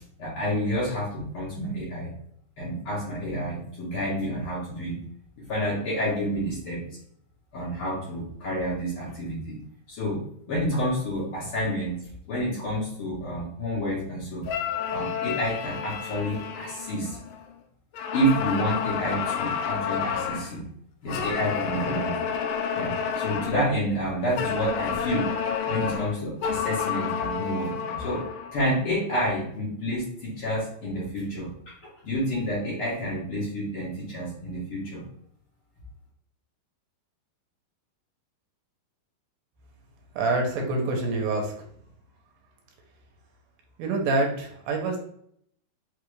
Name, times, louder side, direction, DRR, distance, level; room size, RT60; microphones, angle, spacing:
voice 1, 0.2-2.1 2.6-5.0 5.4-6.8 7.5-9.6 9.9-10.2 10.5-11.9 12.3-14.5 14.9-17.2 18.1-20.6 21.0-22.2 22.7-25.3 25.7-28.2 28.5-35.0, equal, 70° left, -7 dB, 1.3 m, -29 dB
sound 1, 14.4-17.5 17.9-20.5 21.1-23.7 24.4-28.6, left 7 dB, 85° left, 1.8 m, -30 dB
voice 2, 40.2-41.5 43.8-45.0, right 3 dB, 80° right, 1 dB, 2.6 m, -26 dB
5.7 x 2.4 x 3.2 m, 0.67 s
omnidirectional pair, 4.3 m